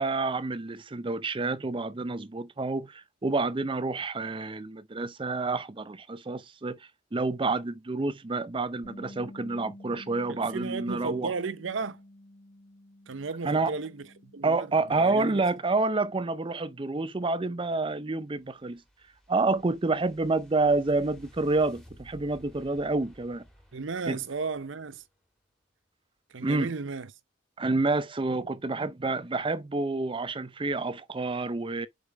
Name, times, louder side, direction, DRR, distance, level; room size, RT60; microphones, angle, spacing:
voice 1, 0.0-6.8 7.1-11.3 13.4-13.7 14.4-18.8 19.3-23.4 24.1-24.2 26.4-26.7 27.6-31.9, right 3 dB, 25° right, 0.5 m, -28 dB
Bass guitar, 8.8-15.1, left 1 dB, 35° left, 2.8 m, -50 dB
voice 2, 10.3-12.0 13.1-15.4 23.7-25.0 26.3-27.1, right 4 dB, 65° right, 0.7 m, -34 dB
sound 1, 18.1-25.1, equal, 5° left, 1.6 m, -55 dB
5.0 x 4.9 x 4.9 m
head